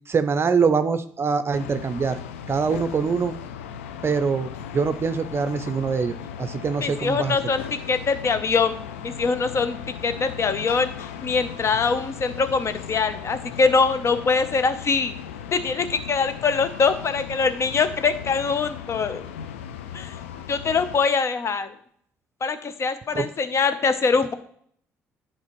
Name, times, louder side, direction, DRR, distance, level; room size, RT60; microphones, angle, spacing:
voice 1, 0.1-2.2 2.5-3.3 4.0-4.5 4.7-7.5 23.1-23.3, right 5 dB, 35° right, 10 dB, 0.5 m, -24 dB
sound 1, 1.5-21.0, left 8 dB, 85° left, 0.4 m, -37 dB
voice 2, 6.8-9.8 10.0-10.9 11.2-15.1 15.5-19.2 19.9-20.2 20.5-21.7 22.4-24.3, left 4 dB, 45° left, 11 dB, 0.7 m, -23 dB
10.5 x 4.2 x 3.1 m, 0.62 s
hypercardioid pair, 50°, 7 cm